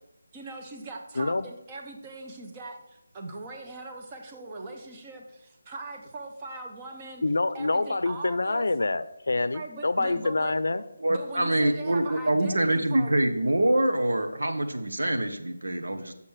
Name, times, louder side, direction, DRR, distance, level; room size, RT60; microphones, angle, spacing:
voice 1, 0.3-7.2 7.5-8.7 9.5-10.5 11.1-13.1, right 2 dB, 15° right, 2 dB, 0.7 m, -40 dB
voice 2, 1.2-1.5 7.2-10.8, left 2 dB, 70° left, 14 dB, 0.5 m, -26 dB
voice 3, 11.0-16.1, right 1 dB, 85° right, 6 dB, 1.1 m, -25 dB
7.0 x 6.7 x 4.7 m, 0.88 s
figure-of-eight pair, 175°, 0 cm